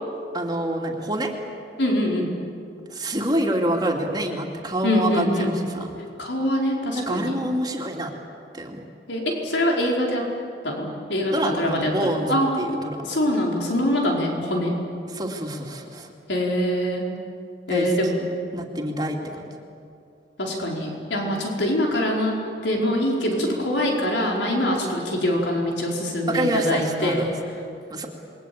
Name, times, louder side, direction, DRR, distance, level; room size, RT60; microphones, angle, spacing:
voice 1, 0.3-1.3 2.9-6.0 6.9-8.1 8.5-8.8 11.3-13.0 14.1-14.5 15.1-16.1 17.7-18.1 18.5-19.4 26.3-27.4 27.9-28.1, right 1 dB, 25° right, 1 dB, 2.7 m, -27 dB
voice 2, 1.8-2.3 4.8-5.5 6.2-7.3 9.1-10.2 10.6-12.5 13.1-14.7 16.3-17.1 17.7-18.2 20.4-27.3, left 1 dB, 85° left, -1 dB, 4.9 m, -24 dB
28.0 x 22.5 x 8.7 m, 2.6 s
head